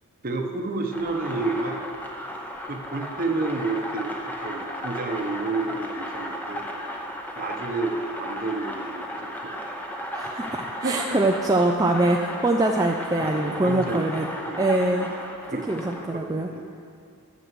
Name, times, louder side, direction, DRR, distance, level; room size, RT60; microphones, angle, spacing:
voice 1, 0.2-1.8 2.6-6.7 7.3-10.5 10.8-11.2 13.2-14.1 14.5-14.7 15.5-16.7, right 3 dB, 40° right, 3 dB, 1.0 m, -31 dB
sound 1, 0.9-16.1, equal, 10° left, 0.9 m, -35 dB
voice 2, 10.1-14.3 14.6-15.1 15.7-16.5, right 2 dB, 15° right, 1 dB, 0.4 m, -23 dB
11.0 x 6.5 x 7.6 m, 2.3 s
head